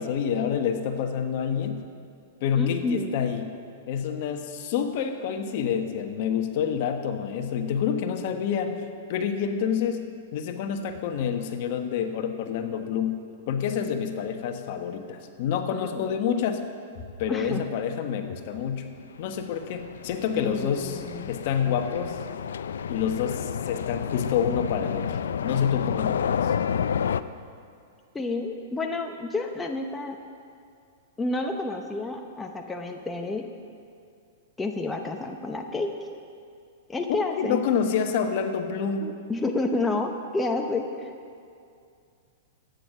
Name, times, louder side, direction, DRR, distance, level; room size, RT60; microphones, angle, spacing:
voice 1, 0.0-1.8 2.4-3.5 3.9-10.0 10.3-13.2 13.5-16.6 17.2-18.9 19.2-22.2 22.9-26.5 37.1-39.1, left 7 dB, 55° left, 6 dB, 1.2 m, -28 dB
voice 2, 2.5-3.4 15.7-16.1 17.3-17.6 20.3-21.3 28.1-30.2 31.2-33.5 34.6-35.9 36.9-37.6 39.0-41.1, left 2 dB, 10° left, 3 dB, 0.8 m, -30 dB
sound 1, 19.3-27.2, left 7 dB, 85° left, 0.4 m, -30 dB
13.0 x 9.1 x 6.7 m, 2.3 s
hypercardioid pair, 140°, 0 cm